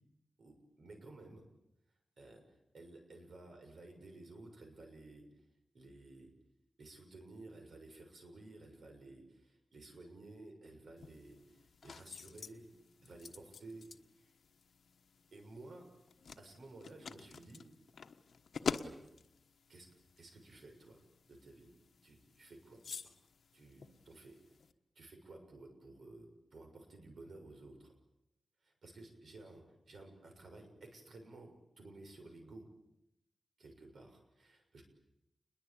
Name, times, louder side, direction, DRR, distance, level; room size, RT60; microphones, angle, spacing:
voice 1, 0.4-1.4 2.2-5.2 5.7-6.3 6.8-12.7 13.0-13.9 14.1-14.3 15.3-15.9 16.4-17.7 18.8-19.0 19.7-19.9 20.2-21.0 21.3-21.7 22.0-23.1 23.5-24.4 24.9-27.9 28.6-32.7 33.6-34.8, right 2 dB, 65° right, 4 dB, 6.6 m, -54 dB
sound 1, 11.0-24.7, left 5 dB, 75° left, 1.3 m, -48 dB
29.0 x 22.0 x 8.8 m, 0.87 s
wide cardioid pair, 140°, 0 cm